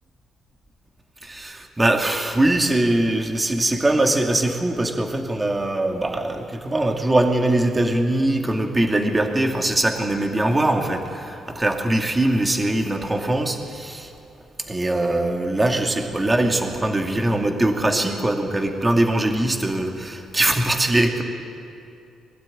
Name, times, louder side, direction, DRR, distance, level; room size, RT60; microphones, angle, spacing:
voice 1, 1.2-14.1 14.7-21.2, right 1 dB, 20° right, 3 dB, 2.3 m, -22 dB
22.5 x 12.0 x 9.9 m, 2.5 s
cardioid pair, 90°, 0 cm